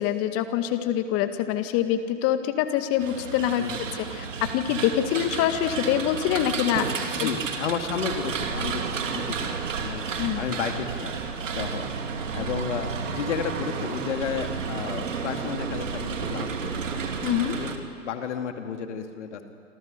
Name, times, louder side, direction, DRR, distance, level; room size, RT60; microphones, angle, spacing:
voice 1, 0.0-7.3 10.2-10.4 17.2-17.6, left 11 dB, 35° left, 9 dB, 2.0 m, -25 dB
sound 1, 3.0-17.8, right 5 dB, 70° right, 2.8 m, -31 dB
voice 2, 7.2-8.8 9.1-10.0 10.4-11.2 11.6-11.9 12.3-16.8 17.5-17.7 18.0-19.4, left 7 dB, 60° left, 6 dB, 2.4 m, -32 dB
27.0 x 27.0 x 6.8 m, 2.2 s
figure-of-eight pair, 100°, 39 cm